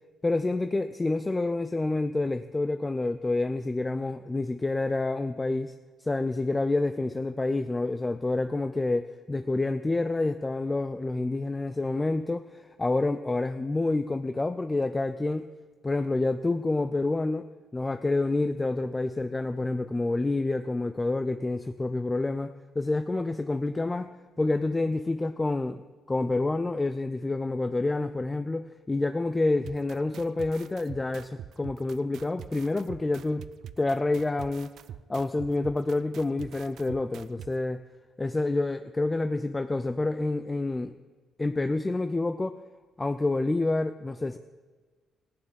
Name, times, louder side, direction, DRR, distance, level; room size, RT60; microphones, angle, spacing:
voice 1, 0.2-5.7 6.0-15.5 15.8-24.1 24.4-25.8 26.1-33.4 33.8-34.7 35.1-37.8 38.2-41.0 41.4-42.6 43.0-44.4, left 2 dB, 20° left, 10 dB, 0.5 m, -28 dB
sound 1, 29.6-37.5, right 10 dB, 75° right, 0.5 m, -44 dB
14.5 x 9.6 x 7.1 m, 1.4 s
cardioid pair, 90°, 0 cm